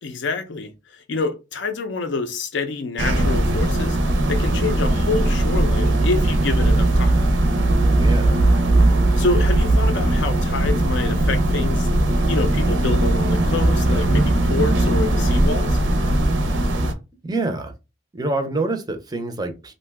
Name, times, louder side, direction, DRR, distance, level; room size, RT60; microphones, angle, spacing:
voice 1, 0.0-4.0 4.3-7.1 9.2-11.9 12.3-15.8, left 3 dB, 65° left, 0.5 m, -27 dB
sound 1, 3.0-16.9, right 1 dB, 70° right, 0.5 m, -19 dB
voice 2, 7.9-8.5 17.2-17.7 18.1-19.7, right 2 dB, 20° right, 0.5 m, -26 dB
2.7 x 2.1 x 3.3 m
head